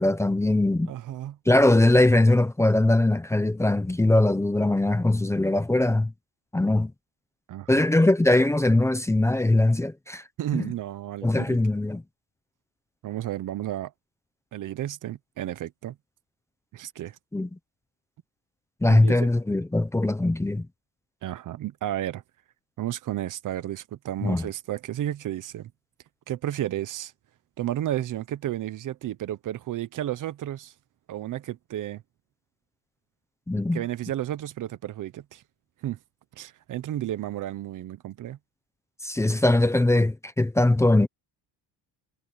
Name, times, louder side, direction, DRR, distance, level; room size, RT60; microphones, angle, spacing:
voice 1, 0.0-0.9 1.5-6.1 6.5-6.9 7.7-10.2 10.5-10.7 11.2-12.0 17.3-17.5 18.8-20.7 24.2-24.5 33.5-33.8 39.0-41.1, left 2 dB, 5° left, 0.9 m, -21 dB
voice 2, 0.9-1.4 7.5-7.8 10.4-11.6 13.0-13.9 14.5-15.9 16.7-17.2 18.9-19.3 21.2-22.2 22.8-25.7 26.3-27.1 27.6-30.7 31.1-32.0 33.7-35.4 35.8-36.0 36.4-38.4, right 12 dB, 45° right, 0.9 m, -32 dB
cardioid pair, 160°, 42 cm